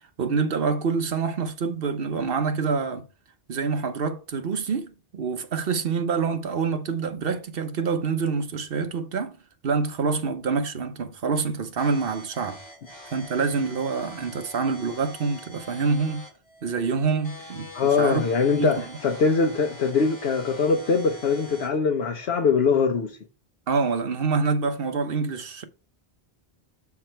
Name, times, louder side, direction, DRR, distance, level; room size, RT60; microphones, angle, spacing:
voice 1, 0.2-3.1 3.5-9.4 9.6-12.6 13.1-16.2 16.6-18.2 18.6-18.8 23.7-25.7, right 5 dB, 65° right, 1.0 m, -26 dB
sound 1, 11.8-21.8, left 1 dB, 25° left, 2.3 m, -45 dB
voice 2, 17.7-23.2, left 5 dB, 85° left, 1.1 m, -22 dB
7.6 x 3.6 x 4.4 m
omnidirectional pair, 1.0 m